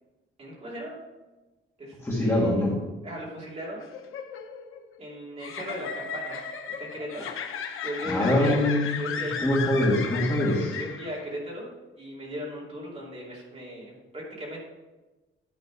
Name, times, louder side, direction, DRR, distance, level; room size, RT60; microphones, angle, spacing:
voice 1, 0.4-1.0 1.8-2.7 3.0-3.8 5.0-6.4 6.8-7.3 7.8-8.6 9.0-9.4 10.7-11.7 12.0-14.6, equal, 30° right, -5 dB, 2.9 m, -37 dB
voice 2, 2.0-2.7 8.1-8.9 9.4-10.8, left 1 dB, 15° left, -6 dB, 1.7 m, -23 dB
sound 1, 3.8-11.4, left 6 dB, 80° left, 0.9 m, -35 dB
11.0 x 4.2 x 6.1 m, 1.1 s
wide cardioid pair, 175°, 21 cm